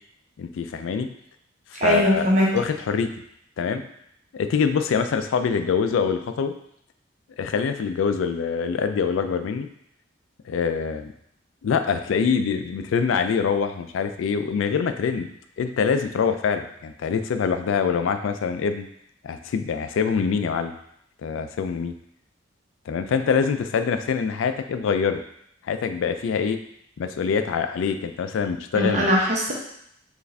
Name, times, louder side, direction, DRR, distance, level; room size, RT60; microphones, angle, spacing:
voice 1, 0.4-1.1 1.7-2.3 2.5-3.1 3.6-3.8 4.3-6.5 7.4-9.7 10.5-11.1 11.6-15.3 15.6-18.9 19.2-20.8 21.2-21.9 22.9-25.2 25.6-26.6 27.0-29.1, left 6 dB, 80° left, 8 dB, 0.3 m, -24 dB
voice 2, 1.8-2.5 28.7-29.5, equal, 35° right, -3 dB, 0.9 m, -20 dB
4.6 x 2.5 x 3.3 m, 0.72 s
head